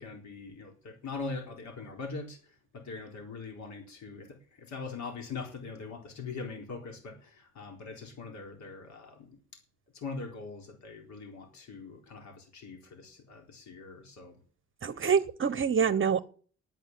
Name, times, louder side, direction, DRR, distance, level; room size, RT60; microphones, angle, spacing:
voice 1, 0.0-9.6 9.9-14.4 15.8-16.0, left 4 dB, 65° left, 3 dB, 4.1 m, -42 dB
voice 2, 14.8-16.2, right 6 dB, 40° right, 12 dB, 1.0 m, -26 dB
9.9 x 9.1 x 9.4 m, 0.42 s
cardioid pair, 90°, 30 cm